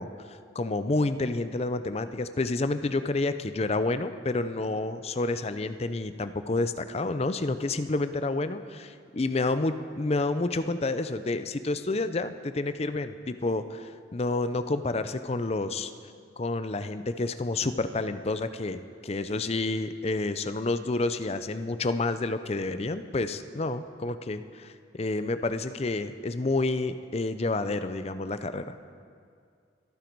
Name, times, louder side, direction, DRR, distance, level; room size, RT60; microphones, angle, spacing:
voice 1, 0.0-15.9 16.4-28.7, left 2 dB, 30° left, 11 dB, 0.5 m, -29 dB
23.5 x 9.1 x 4.6 m, 2.3 s
head